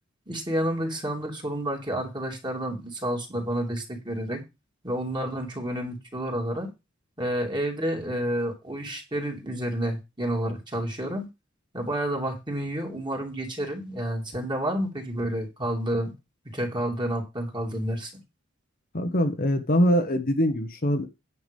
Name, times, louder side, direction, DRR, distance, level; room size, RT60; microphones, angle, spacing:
voice 1, 0.3-4.4 4.8-6.7 7.2-11.3 11.7-16.1 16.4-18.2, right 1 dB, 20° right, 1 dB, 2.8 m, -30 dB
voice 2, 18.9-21.1, equal, 45° left, 6 dB, 1.2 m, -23 dB
9.6 x 6.0 x 5.4 m, 0.25 s
head